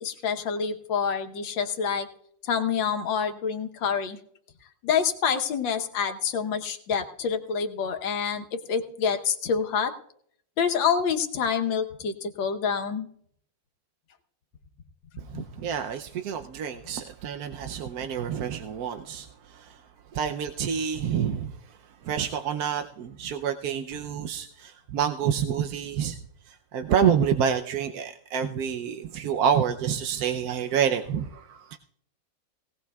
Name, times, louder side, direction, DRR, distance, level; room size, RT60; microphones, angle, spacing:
voice 1, 0.0-2.1 2.4-4.2 4.8-9.9 10.6-13.1 15.3-15.4, left 6 dB, 90° left, 5 dB, 1.8 m, -27 dB
voice 2, 15.3-19.8 20.1-21.5 22.0-26.2 26.7-31.8, right 8 dB, 65° right, 6 dB, 1.0 m, -28 dB
18.5 x 17.5 x 2.3 m, 0.66 s
omnidirectional pair, 2.0 m